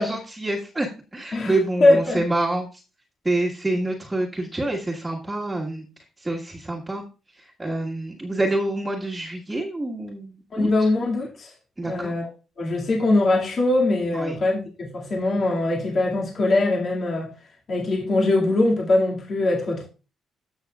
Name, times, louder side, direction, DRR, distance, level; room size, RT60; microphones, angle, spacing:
voice 1, 0.0-2.8 3.2-5.9 6.2-7.0 7.3-10.9 11.8-12.1 14.1-14.3, right 2 dB, 15° right, 1.6 m, -27 dB
voice 2, 1.8-2.2 10.5-11.5 11.9-12.3 12.6-17.3 17.7-19.9, left 2 dB, 50° left, 2.2 m, -22 dB
15.0 x 6.3 x 2.4 m
cardioid pair, 90°, 0 cm